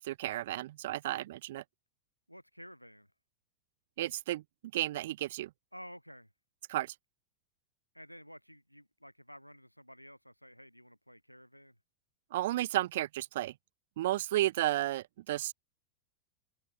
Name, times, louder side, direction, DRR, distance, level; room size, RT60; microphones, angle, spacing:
voice 1, 0.0-1.6 4.0-4.4 4.7-5.5 6.7-6.9 12.3-13.5 14.0-15.5, right 15 dB, 55° right, 0.6 m, -32 dB
voice 2, 2.3-3.1 5.7-6.3 7.9-11.7, equal, 90° left, 1.3 m, -52 dB
open air
figure-of-eight pair, 90°, 0 cm